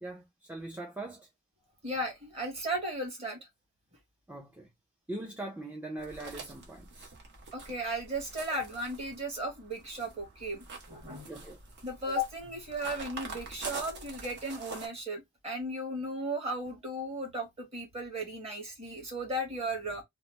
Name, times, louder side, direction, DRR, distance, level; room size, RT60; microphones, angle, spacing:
voice 1, 0.0-1.3 4.3-4.7 5.1-7.1 11.3-11.6, right 2 dB, 5° right, 0.5 m, -41 dB
voice 2, 1.8-3.4 7.5-11.3 11.8-20.0, right 1 dB, 30° right, 1.4 m, -36 dB
sound 1, 6.0-14.9, right 3 dB, 50° right, 0.9 m, -45 dB
3.0 x 2.0 x 3.1 m
head